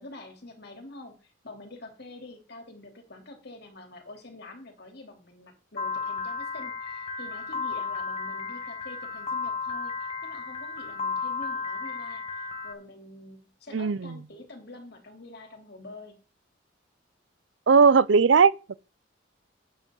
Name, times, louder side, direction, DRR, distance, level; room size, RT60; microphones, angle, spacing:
voice 1, 0.0-16.1, left 2 dB, 55° left, 3.1 m, -46 dB
Piano, 5.8-12.7, left 5 dB, 30° left, 1.0 m, -33 dB
voice 2, 13.7-14.1 17.7-18.7, right 5 dB, 70° right, 0.5 m, -19 dB
11.5 x 9.4 x 3.8 m
head